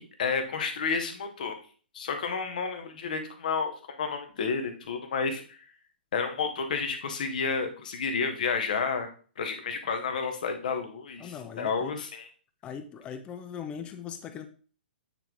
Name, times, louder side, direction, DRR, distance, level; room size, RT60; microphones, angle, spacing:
voice 1, 0.0-1.6 1.9-5.6 6.1-9.1 9.4-12.3, left 5 dB, 50° left, 6 dB, 1.5 m, -31 dB
voice 2, 11.2-11.9 12.6-14.5, left 7 dB, 20° left, 9 dB, 0.8 m, -40 dB
8.9 x 4.5 x 3.7 m, 0.39 s
figure-of-eight pair, 115°, 6 cm